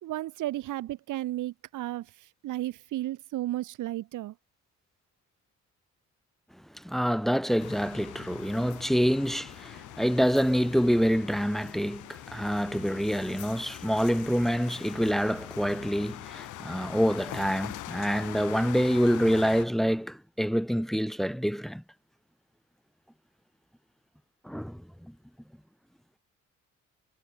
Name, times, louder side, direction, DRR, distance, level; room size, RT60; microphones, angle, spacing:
voice 1, 0.0-4.3, right 15 dB, 85° right, 2.7 m, -34 dB
voice 2, 6.7-21.8 24.4-24.8, equal, ahead, 0.8 m, -26 dB
sound 1, 7.6-19.7, left 16 dB, 90° left, 2.3 m, -43 dB
cardioid pair, 90°, 30 cm